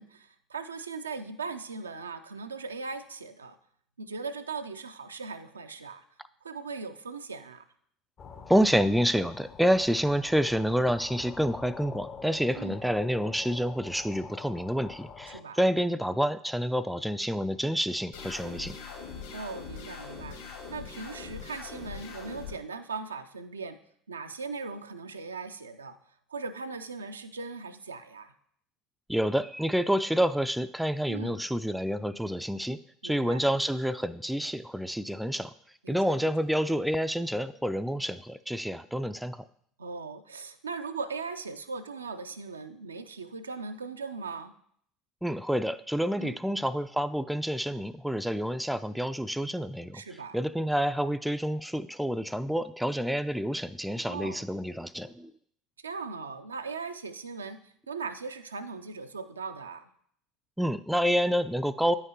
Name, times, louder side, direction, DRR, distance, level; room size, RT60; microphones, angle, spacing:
voice 1, 0.0-3.6 4.0-6.0 6.4-7.7 12.6-12.8 15.3-15.6 19.3-20.4 20.7-23.8 24.1-26.0 26.3-28.3 31.1-31.4 33.0-33.4 35.8-36.3 39.8-44.5 46.1-46.4 49.9-50.4 54.1-54.5 55.8-59.9, right 4 dB, 80° right, 8 dB, 0.4 m, -39 dB
sound 1, 8.2-15.4, left 5 dB, 40° left, 0.6 m, -46 dB
voice 2, 8.5-18.8 29.1-35.5 35.9-39.4 45.2-50.0 50.3-55.3 60.6-62.0, equal, 5° right, 13 dB, 0.3 m, -28 dB
sound 2, 18.1-22.5, left 5 dB, 70° left, 2.8 m, -42 dB
9.2 x 5.6 x 2.8 m, 0.64 s
figure-of-eight pair, 65°, 0 cm